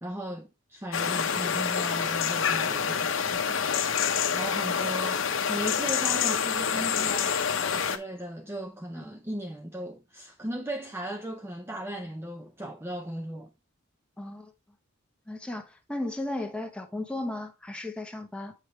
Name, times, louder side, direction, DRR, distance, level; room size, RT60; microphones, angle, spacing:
voice 1, 0.0-3.8 4.0-13.5, right 1 dB, 10° right, 0.5 m, -37 dB
sound 1, 0.9-8.0, left 7 dB, 60° left, 0.8 m, -27 dB
voice 2, 14.2-14.5 15.3-18.5, left 2 dB, 5° left, 0.9 m, -35 dB
8.0 x 5.3 x 3.1 m
head